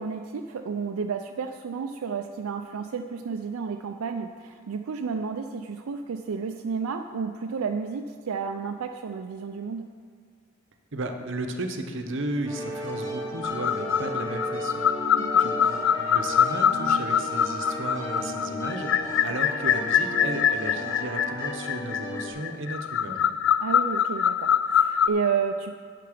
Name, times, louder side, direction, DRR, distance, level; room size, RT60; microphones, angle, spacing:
voice 1, 0.0-9.9 15.2-15.5 23.6-25.7, right 5 dB, 85° right, 5 dB, 0.4 m, -31 dB
voice 2, 10.9-15.1 15.4-23.2, right 2 dB, 60° right, 5 dB, 0.8 m, -34 dB
sound 1, 12.4-22.3, left 1 dB, 20° left, 2.8 m, -35 dB
sound 2, 13.4-25.1, left 8 dB, 60° left, 0.3 m, -24 dB
9.7 x 6.7 x 5.0 m, 2.1 s
head